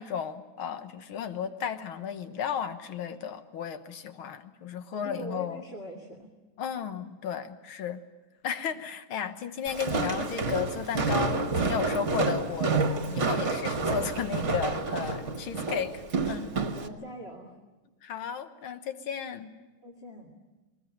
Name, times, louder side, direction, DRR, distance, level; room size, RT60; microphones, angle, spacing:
voice 1, 0.0-5.6 6.6-8.0 8.4-12.7 13.1-16.5 18.0-19.5, left 8 dB, 85° left, 9 dB, 2.1 m, -34 dB
voice 2, 4.9-6.3 16.5-17.6 19.8-20.3, equal, 30° left, 0 dB, 2.4 m, -42 dB
Walk footsteps, 9.7-16.9, right 3 dB, 40° right, 1.5 m, -29 dB
21.5 x 19.5 x 9.9 m, 1.2 s
omnidirectional pair, 2.2 m